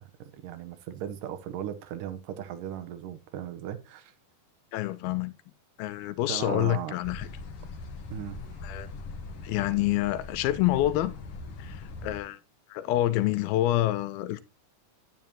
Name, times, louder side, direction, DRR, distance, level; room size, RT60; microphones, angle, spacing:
voice 1, 0.0-4.1 6.3-6.9 8.1-8.4, right 10 dB, 70° right, 2.3 m, -37 dB
voice 2, 4.7-5.3 5.8-7.3 8.6-8.9 9.4-11.1 11.6-12.4 12.7-14.4, left 15 dB, 85° left, 2.6 m, -27 dB
sound 1, 7.0-12.2, left 3 dB, 55° left, 1.6 m, -41 dB
10.5 x 9.3 x 2.9 m
omnidirectional pair, 4.3 m